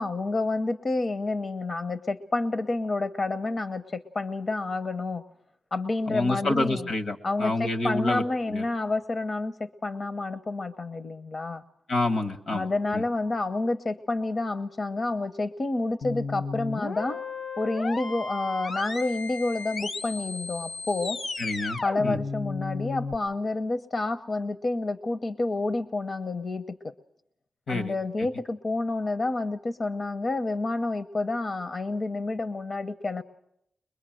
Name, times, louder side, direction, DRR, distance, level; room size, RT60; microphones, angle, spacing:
voice 1, 0.0-5.2 5.7-6.9 7.2-11.6 12.5-17.2 17.6-21.2 21.8-26.9 27.7-33.2, left 2 dB, 55° left, 9 dB, 0.8 m, -29 dB
voice 2, 6.1-8.6 11.9-13.0 21.4-22.2 27.7-28.3, left 2 dB, 85° left, 5 dB, 1.7 m, -29 dB
sound 1, 16.0-23.1, left 3 dB, 70° left, 1.1 m, -34 dB
22.0 x 22.0 x 7.7 m, 0.77 s
cardioid pair, 60°, 0 cm